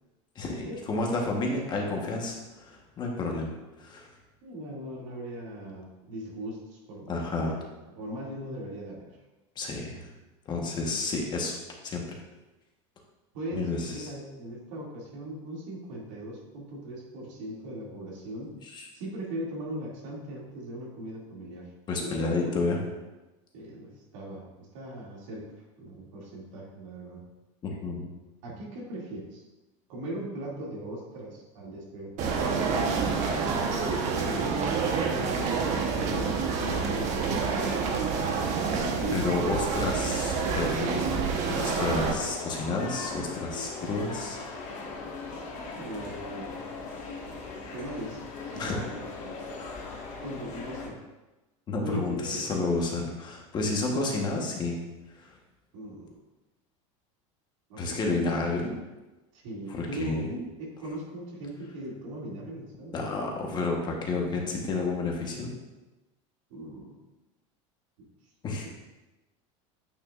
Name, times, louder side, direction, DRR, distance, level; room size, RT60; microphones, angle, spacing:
voice 1, 0.3-3.5 3.8-4.1 7.1-7.6 9.6-10.1 10.5-11.6 11.8-12.2 13.5-14.1 18.6-18.8 21.9-22.8 27.6-28.0 39.1-41.3 41.5-44.9 48.6-48.7 51.7-54.8 55.1-55.3 57.8-58.7 59.7-60.4 62.9-65.5 68.4-68.7, left 3 dB, 25° left, 0 dB, 1.2 m, -30 dB
voice 2, 4.4-9.1 13.3-18.5 18.9-21.7 22.0-22.5 23.5-25.5 25.8-27.2 28.4-29.4 29.9-33.5 34.1-38.2 39.0-39.5 45.8-46.6 47.7-48.2 48.6-49.5 50.2-51.0 51.8-52.6 55.7-56.2 57.7-58.2 59.3-63.0 66.5-67.0 68.0-68.1, right 1 dB, 80° right, -4 dB, 2.5 m, -39 dB
sound 1, 32.2-42.1, right 5 dB, 50° right, 1.1 m, -28 dB
sound 2, 41.4-50.9, left 3 dB, 45° left, 1.6 m, -39 dB
8.6 x 6.2 x 2.5 m, 1.1 s
supercardioid pair, 145°, 16 cm